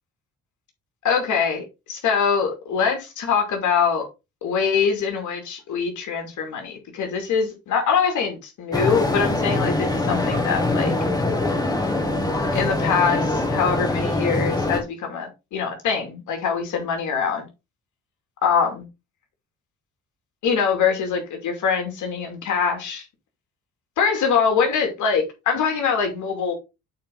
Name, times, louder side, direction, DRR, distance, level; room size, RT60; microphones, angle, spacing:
voice 1, 1.0-4.1 4.4-10.9 12.5-17.5 18.4-18.8 20.4-23.0 24.0-26.5, left 6 dB, 75° left, 2.6 m, -23 dB
sound 1, 8.7-14.8, left 2 dB, 15° left, 2.1 m, -23 dB
8.5 x 4.3 x 3.9 m
cardioid pair, 90°, 30 cm